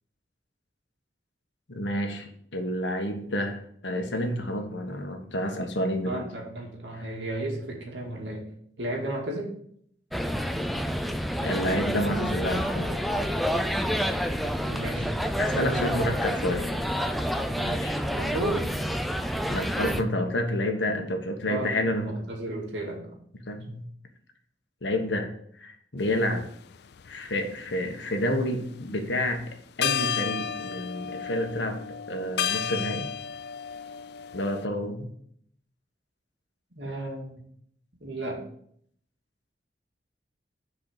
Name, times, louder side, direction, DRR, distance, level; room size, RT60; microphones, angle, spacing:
voice 1, 1.7-6.2 11.4-13.0 15.4-16.7 17.5-18.0 19.5-22.2 23.5-23.8 24.8-25.3 25.6-26.4 27.0-29.4 29.8-33.1 34.3-35.1, left 1 dB, 85° left, 4 dB, 1.4 m, -29 dB
voice 2, 6.0-8.5 8.8-9.5 14.6-15.1 15.6-16.0 18.1-18.7 21.5-23.2 36.8-37.4 38.0-38.4, right 1 dB, 85° right, 0 dB, 2.2 m, -33 dB
sound 1, 10.1-20.0, equal, ahead, 0.4 m, -28 dB
sound 2, 26.1-26.2 26.9-27.9 29.4-29.5 29.8-34.7, left 8 dB, 65° left, 0.4 m, -32 dB
6.6 x 4.8 x 6.6 m, 0.66 s
head